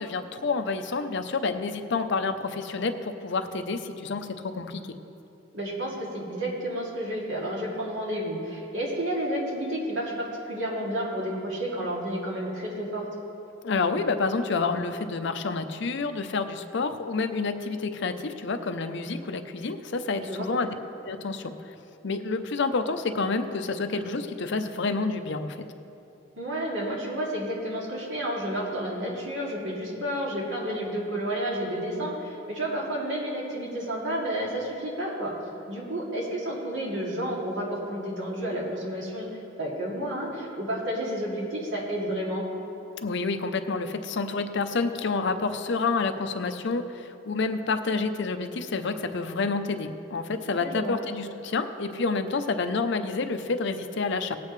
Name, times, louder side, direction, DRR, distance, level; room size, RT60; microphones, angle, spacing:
voice 1, 0.0-4.9 13.6-20.7 21.1-21.7 22.0-25.6 43.0-54.4, left 4 dB, 65° left, 8 dB, 0.6 m, -29 dB
voice 2, 5.5-13.1 20.3-20.7 26.3-35.3 35.7-39.3 39.6-42.5 50.5-51.0, right 1 dB, 75° right, -4 dB, 2.6 m, -31 dB
18.5 x 8.5 x 3.2 m, 2.9 s
head